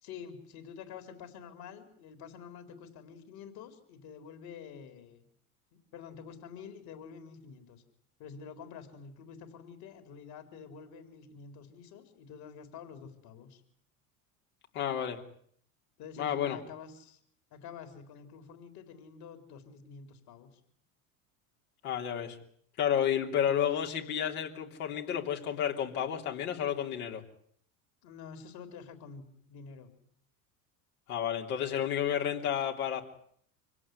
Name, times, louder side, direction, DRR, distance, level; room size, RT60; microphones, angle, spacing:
voice 1, 0.0-5.3 5.7-7.8 8.2-13.6 16.0-17.2 17.5-20.6 28.0-29.9, left 6 dB, 55° left, 9 dB, 4.1 m, -48 dB
voice 2, 14.7-15.2 16.2-16.6 21.8-22.4 22.8-27.2 31.1-33.0, left 9 dB, 75° left, 2 dB, 3.4 m, -31 dB
25.5 x 17.0 x 9.7 m, 0.65 s
hypercardioid pair, 80°, 43 cm